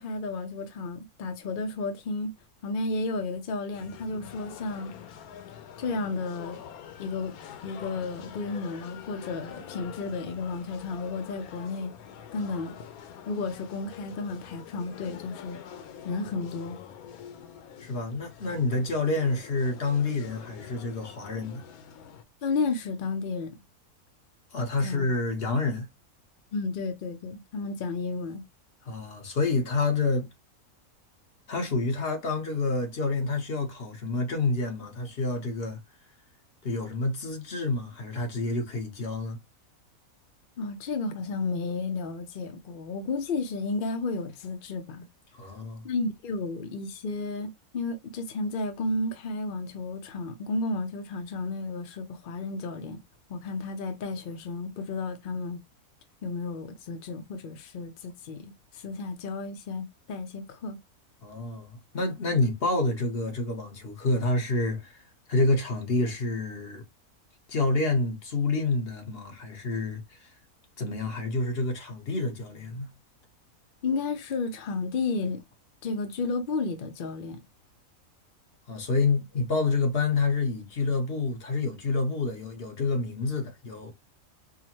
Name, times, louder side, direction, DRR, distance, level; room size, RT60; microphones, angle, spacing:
voice 1, 0.0-2.3 2.6-4.9 5.8-6.6 7.0-7.3 7.6-11.9 12.3-12.8 13.3-15.6 16.0-16.8 22.4-23.6 24.8-25.1 26.5-28.4 40.6-45.1 45.8-53.0 53.3-55.6 56.2-60.8 73.8-75.4 75.8-77.4, left 3 dB, 65° left, 0.5 m, -32 dB
sound 1, 3.7-22.2, left 9 dB, 85° left, 1.1 m, -45 dB
voice 2, 17.8-21.6 24.5-25.9 28.8-30.3 31.5-35.8 36.6-39.4 45.3-45.8 61.2-65.0 65.3-66.8 67.5-70.3 70.8-72.9 78.7-83.9, left 3 dB, 45° left, 1.1 m, -28 dB
4.8 x 2.1 x 2.9 m
omnidirectional pair, 1.5 m